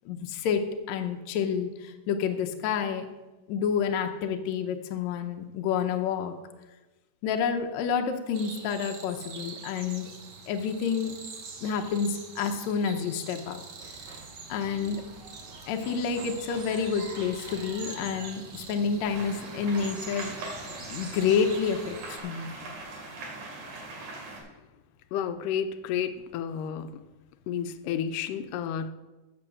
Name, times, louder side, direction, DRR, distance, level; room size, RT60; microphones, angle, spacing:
voice 1, 0.1-0.6 0.9-3.1 3.5-6.3 7.2-10.1 10.5-11.2 11.6-13.6 14.5-15.0 15.7-20.4 20.9-22.5, left 6 dB, 75° left, 5 dB, 1.9 m, -29 dB
sound 1, 8.3-22.2, right 5 dB, 60° right, 1.3 m, -45 dB
sound 2, 13.8-21.9, right 2 dB, 40° right, 0.8 m, -47 dB
sound 3, 19.0-24.4, right 2 dB, 80° right, 3.7 m, -41 dB
voice 2, 25.1-26.9 27.5-28.9, left 8 dB, 90° left, 10 dB, 2.2 m, -31 dB
7.7 x 6.7 x 7.2 m, 1.1 s
omnidirectional pair, 3.6 m